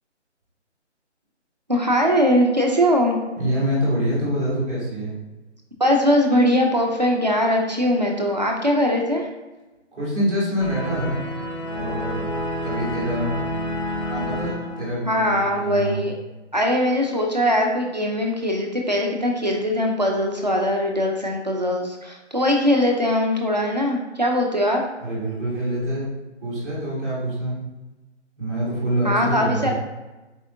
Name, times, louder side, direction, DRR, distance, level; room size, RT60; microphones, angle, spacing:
voice 1, 1.7-3.2 5.8-9.3 15.1-16.1 16.5-24.8 29.0-29.7, equal, 40° right, 1 dB, 0.4 m, -21 dB
voice 2, 3.3-5.1 9.9-11.2 11.7-12.3 12.6-13.5 14.0-16.0 25.0-26.1 26.4-27.6 28.4-29.7, equal, ahead, -9 dB, 1.4 m, -26 dB
sound 1, 10.6-15.4, left 1 dB, 25° left, 0.5 m, -29 dB
4.2 x 3.5 x 2.5 m, 1.1 s
hypercardioid pair, 165°, 36 cm